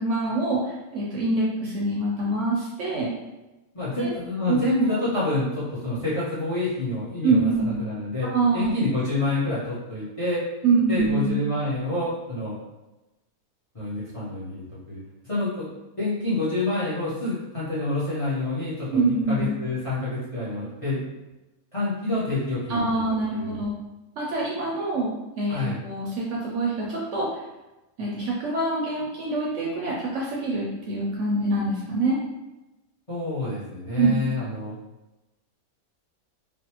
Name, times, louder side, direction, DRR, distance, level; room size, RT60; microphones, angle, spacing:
voice 1, 0.0-3.1 3.9-4.1 4.5-4.6 4.9-5.0 7.2-7.8 8.3-8.7 10.6-11.4 18.9-19.5 22.7-23.7 24.2-27.4 28.0-32.2 34.0-34.1, right 3 dB, 65° right, -4 dB, 0.8 m, -25 dB
voice 2, 3.7-8.3 8.5-10.4 10.9-12.6 13.7-15.0 15.2-15.7 16.0-21.0 21.7-23.6 25.5-25.8 33.1-34.8, left 2 dB, 25° left, -9 dB, 0.8 m, -28 dB
3.3 x 2.2 x 2.9 m, 1.0 s
omnidirectional pair, 1.5 m